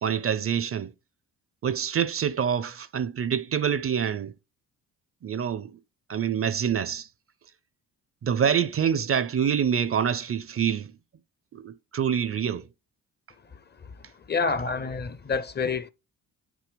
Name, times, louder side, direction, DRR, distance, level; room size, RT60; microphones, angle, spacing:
voice 1, 0.0-0.9 1.6-4.3 5.2-5.8 6.1-7.1 8.2-11.0 11.5-12.7, right 8 dB, 40° right, 0.5 m, -26 dB
voice 2, 14.3-15.9, left 4 dB, 30° left, 0.6 m, -27 dB
9.3 x 6.1 x 3.3 m
cardioid pair, 75°, 37 cm